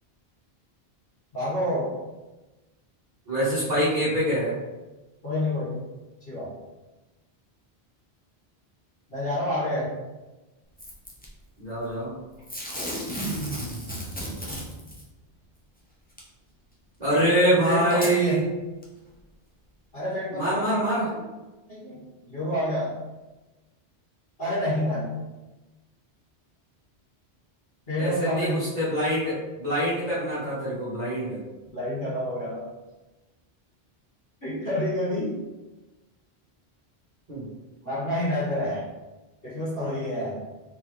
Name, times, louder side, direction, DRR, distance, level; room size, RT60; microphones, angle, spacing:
voice 1, 1.3-1.9 5.2-5.8 6.3-6.5 9.1-9.9 17.7-18.4 19.9-21.2 21.7-23.0 24.4-25.1 27.9-28.6 31.7-32.7 34.4-35.4 37.8-38.9 39.4-40.4, left 1 dB, 60° left, -10 dB, 1.9 m, -28 dB
voice 2, 3.3-4.6 11.6-12.2 17.0-18.4 20.3-21.1 28.0-31.4 37.3-37.5, right 1 dB, 40° right, -10 dB, 1.4 m, -25 dB
Packing tape duct tape / Tearing, 10.8-11.3 12.5-15.0 16.2-16.3 17.2-17.3 17.9-18.2 18.8-18.9, right 1 dB, 10° left, 0.6 m, -33 dB
4.2 x 3.6 x 3.2 m, 1.1 s
omnidirectional pair, 1.1 m